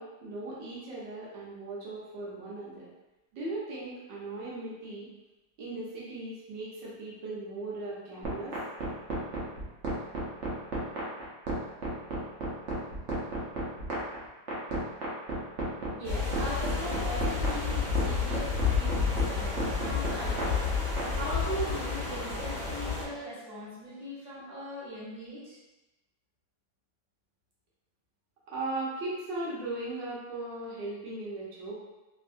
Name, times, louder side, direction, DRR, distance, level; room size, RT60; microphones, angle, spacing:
voice 1, 0.0-2.9 3.3-5.1 5.6-8.6 28.5-31.7, right 2 dB, 70° right, -7 dB, 1.5 m, -38 dB
sound 1, 8.2-21.1, right 3 dB, 55° right, 0.9 m, -33 dB
voice 2, 15.9-25.6, equal, 30° right, -10 dB, 1.1 m, -39 dB
sound 2, 16.0-23.0, left 5 dB, ahead, 0.6 m, -30 dB
3.6 x 2.7 x 2.5 m, 1.1 s
omnidirectional pair, 2.0 m